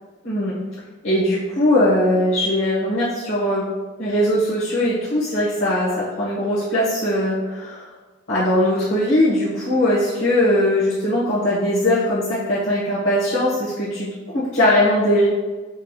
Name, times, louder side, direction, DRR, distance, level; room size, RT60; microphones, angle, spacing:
voice 1, 0.2-0.6 1.0-3.7 4.0-7.8 8.3-14.1 14.3-15.3, left 1 dB, 90° left, -11 dB, 1.0 m, -20 dB
4.5 x 2.9 x 2.2 m, 1.3 s
head